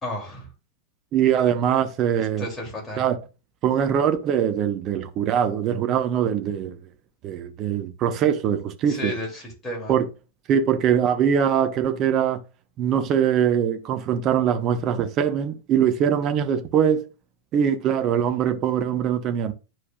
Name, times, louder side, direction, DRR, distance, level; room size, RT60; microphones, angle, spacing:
voice 1, 0.0-0.5 2.2-3.0 8.9-10.0, left 1 dB, 15° left, 2.9 m, -33 dB
voice 2, 1.1-2.5 3.0-3.2 3.6-6.8 7.2-9.1 9.9-10.1 10.5-12.4 12.8-17.1 17.5-19.5, right 8 dB, 35° right, 0.9 m, -22 dB
10.5 x 4.8 x 2.4 m
figure-of-eight pair, 90°, 0 cm